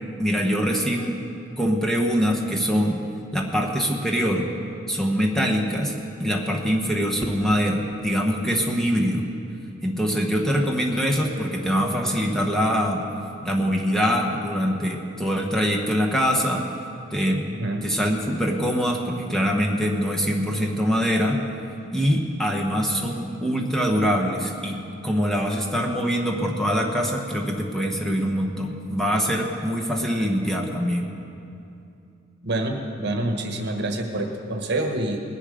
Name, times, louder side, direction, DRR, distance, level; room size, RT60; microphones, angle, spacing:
voice 1, 0.2-1.2 1.6-3.0 3.3-4.5 4.9-9.3 9.8-13.0 13.4-16.6 17.1-17.5 17.8-21.4 21.9-31.1, equal, ahead, 0 dB, 1.2 m, -23 dB
voice 2, 32.4-35.2, right 1 dB, 60° right, 4 dB, 1.4 m, -27 dB
19.5 x 10.5 x 5.0 m, 2.6 s
head